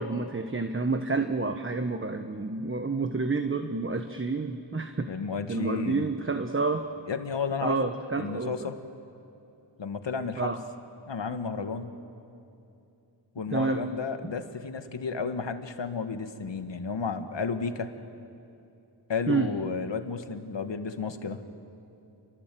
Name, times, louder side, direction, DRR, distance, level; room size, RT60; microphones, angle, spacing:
voice 1, 0.0-5.1 5.5-6.8 7.6-8.7 10.4-10.6 13.5-13.8 19.3-19.5, right 3 dB, 25° right, 7 dB, 1.3 m, -29 dB
voice 2, 5.1-6.1 7.1-7.9 8.2-8.8 9.8-10.5 11.1-11.9 13.4-17.9 19.1-21.4, left 5 dB, 65° left, 7 dB, 1.8 m, -32 dB
29.0 x 24.0 x 7.8 m, 2.7 s
cardioid pair, 60°, 46 cm